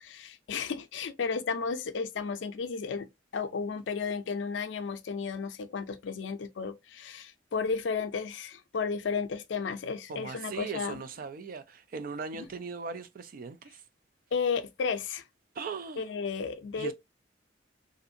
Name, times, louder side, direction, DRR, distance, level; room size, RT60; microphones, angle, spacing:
voice 1, 0.0-11.0 12.4-12.5 14.3-15.2 16.0-16.9, left 5 dB, 75° left, 0.4 m, -33 dB
voice 2, 10.1-13.8 15.5-16.0 16.8-16.9, right 5 dB, 50° right, 0.3 m, -39 dB
2.6 x 2.5 x 2.5 m
head